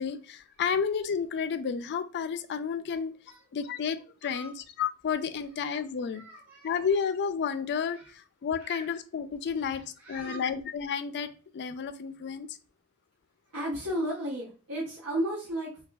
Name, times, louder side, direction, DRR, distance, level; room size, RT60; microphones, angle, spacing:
voice 1, 0.0-3.1 3.5-6.2 6.6-12.5, left 6 dB, 50° left, 11 dB, 0.4 m, -31 dB
voice 2, 6.1-6.8 8.6-8.9 10.0-10.5 13.5-15.8, right 1 dB, 70° right, -4 dB, 1.0 m, -34 dB
4.8 x 2.3 x 2.3 m, 0.38 s
head